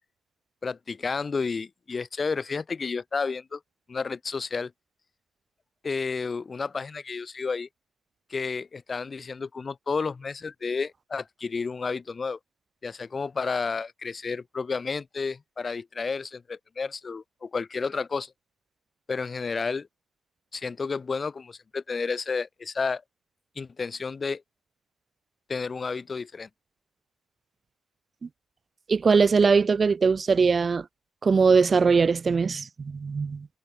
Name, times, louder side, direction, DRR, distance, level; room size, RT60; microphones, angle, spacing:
voice 1, 0.6-3.6 3.9-4.7 5.8-7.7 8.3-12.4 12.8-18.3 19.1-19.9 20.5-23.0 23.6-24.4 25.5-26.5, left 4 dB, 35° left, 3.0 m, -31 dB
voice 2, 28.9-30.8 31.2-33.5, right 5 dB, 35° right, 0.6 m, -21 dB
cardioid pair, 90°, 0 cm